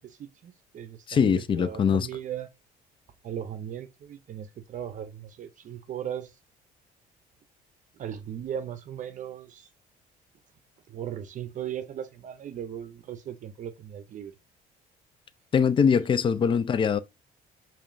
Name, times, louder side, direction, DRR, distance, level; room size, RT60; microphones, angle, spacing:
voice 1, 0.0-2.5 3.2-6.3 8.0-9.7 10.9-14.3 15.9-16.1, right 9 dB, 50° right, 0.6 m, -37 dB
voice 2, 1.1-2.1 15.5-17.0, left 6 dB, 30° left, 0.4 m, -22 dB
4.8 x 3.0 x 2.5 m
cardioid pair, 110°, 17 cm